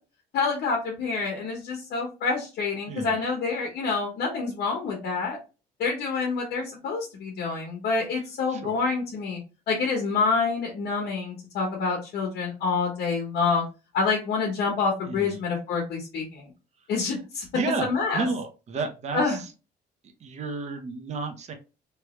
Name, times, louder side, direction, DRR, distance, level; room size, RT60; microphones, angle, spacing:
voice 1, 0.3-5.4 5.8-9.4 9.7-13.6 13.9-16.4 16.9-17.4 17.8-18.3 19.1-19.4, left 4 dB, 70° left, 0 dB, 1.1 m, -27 dB
voice 2, 8.5-8.8 15.1-15.4 17.5-19.5 20.2-21.5, right 4 dB, 40° right, 5 dB, 0.8 m, -32 dB
3.3 x 3.0 x 3.0 m, 0.31 s
cardioid pair, 110°, 17 cm